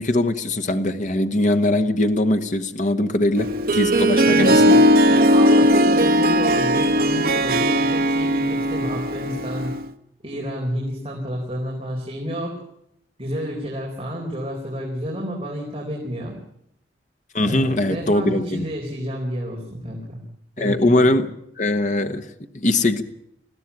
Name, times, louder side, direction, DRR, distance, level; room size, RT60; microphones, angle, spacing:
voice 1, 0.0-4.8 17.3-18.6 20.6-21.3 21.6-23.0, left 1 dB, 45° left, 1.2 m, -21 dB
Harp, 3.4-9.9, equal, 55° right, 1.1 m, -18 dB
voice 2, 4.2-4.6 5.1-9.7 10.2-12.6 13.2-16.4 17.4-20.2 20.6-21.1, equal, 30° right, 4.3 m, -30 dB
21.5 x 15.5 x 8.5 m
head